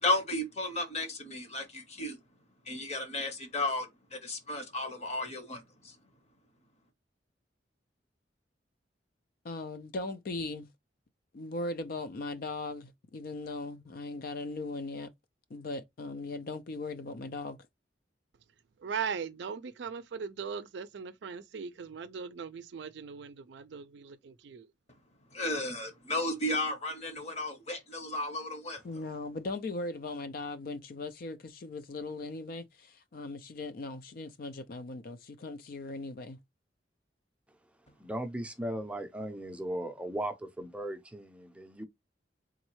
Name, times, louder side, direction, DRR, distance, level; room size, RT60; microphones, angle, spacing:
voice 1, 0.0-2.2 2.7-5.9 25.3-28.8, left 2 dB, 35° left, 0.9 m, -34 dB
voice 2, 9.4-10.7 11.3-15.1 15.5-17.6 28.8-36.4, left 2 dB, 50° left, 0.4 m, -39 dB
voice 3, 18.8-24.7, right 6 dB, 70° right, 0.4 m, -39 dB
voice 4, 38.0-41.8, right 1 dB, 5° right, 0.5 m, -37 dB
3.8 x 3.1 x 3.0 m
head